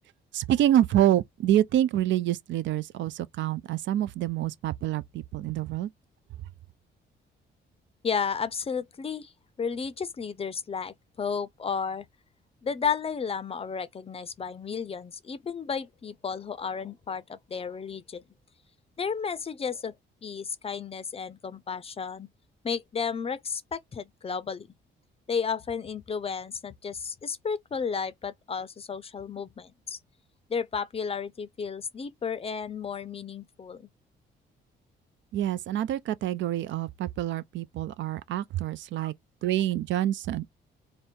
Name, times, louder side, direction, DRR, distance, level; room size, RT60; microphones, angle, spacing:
voice 1, 0.3-5.9 35.3-39.1 39.4-40.5, right 12 dB, 70° right, 0.4 m, -27 dB
voice 2, 8.0-9.3 9.6-12.1 12.6-18.2 19.0-19.9 20.2-22.3 22.6-24.7 25.3-30.0 30.5-33.9, left 6 dB, 30° left, 0.5 m, -33 dB
3.5 x 2.1 x 4.2 m
cardioid pair, 90°, 20 cm